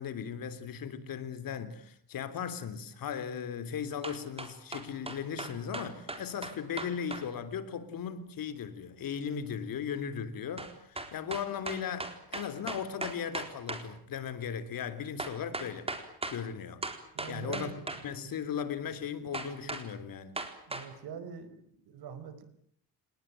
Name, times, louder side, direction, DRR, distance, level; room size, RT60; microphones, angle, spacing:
voice 1, 0.0-15.9 16.3-16.8 17.3-17.7 18.0-20.4, left 7 dB, 60° left, 3.4 m, -37 dB
sound 1, 4.0-7.3 10.6-13.9 15.2-16.4 16.8-18.0 19.3-19.9 20.4-20.9, right 2 dB, 15° right, 4.2 m, -38 dB
voice 2, 17.1-18.3 20.7-22.4, right 7 dB, 75° right, 5.2 m, -44 dB
30.0 x 20.0 x 9.0 m
cardioid pair, 135°, 38 cm